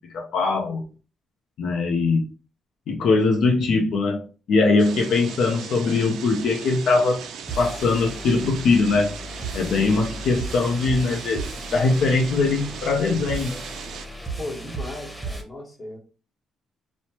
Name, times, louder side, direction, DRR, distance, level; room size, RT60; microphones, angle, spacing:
voice 1, 0.1-0.8 1.6-2.3 2.9-7.3 7.6-9.1 9.5-13.6, left 3 dB, 70° left, 0.5 m, -21 dB
sound 1, 4.8-14.1, right 7 dB, 80° right, 0.4 m, -38 dB
sound 2, 7.5-15.4, right 2 dB, ahead, 0.8 m, -35 dB
voice 2, 14.4-16.0, left 2 dB, 25° left, 1.1 m, -36 dB
3.0 x 2.0 x 2.8 m
cardioid pair, 90°, 0 cm